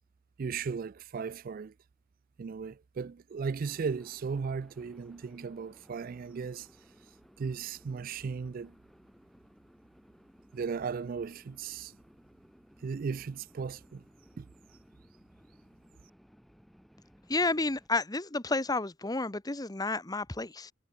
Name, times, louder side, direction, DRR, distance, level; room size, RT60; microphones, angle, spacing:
voice 1, 0.4-1.7 2.4-6.7 7.4-8.7 10.5-11.9 12.8-14.0 14.4-14.5, right 5 dB, 50° right, 0.4 m, -36 dB
sound 1, 3.6-17.9, equal, ahead, 3.5 m, -60 dB
voice 2, 17.3-20.7, left 3 dB, 20° left, 1.1 m, -31 dB
head